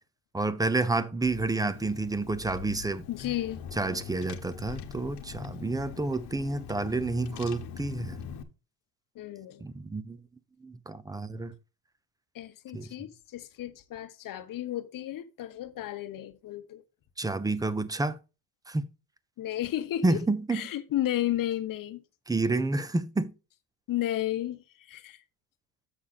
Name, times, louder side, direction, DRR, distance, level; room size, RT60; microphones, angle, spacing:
voice 1, 0.3-3.0 3.8-8.2 9.6-10.2 10.6-11.5 12.7-12.9 17.2-18.2 18.7-18.9 20.0-20.6 22.3-23.3, right 3 dB, 10° right, 0.5 m, -29 dB
Car / Engine, 1.2-8.4, left 7 dB, 70° left, 1.2 m, -42 dB
voice 2, 3.1-3.6 9.1-9.6 12.3-16.8 19.4-20.2 20.5-22.0 23.9-25.2, left 13 dB, 50° left, 1.0 m, -33 dB
7.3 x 6.3 x 4.1 m
cardioid pair, 120°, 42 cm